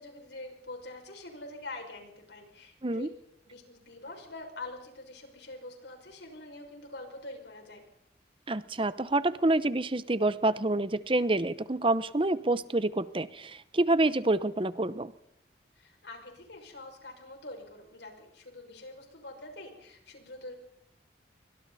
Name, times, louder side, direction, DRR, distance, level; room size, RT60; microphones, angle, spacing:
voice 1, 0.0-3.1 3.5-7.8 15.7-20.5, left 2 dB, 75° left, 3 dB, 6.3 m, -45 dB
voice 2, 8.5-15.1, right 2 dB, 30° right, 15 dB, 0.8 m, -27 dB
29.5 x 24.5 x 4.2 m, 0.74 s
head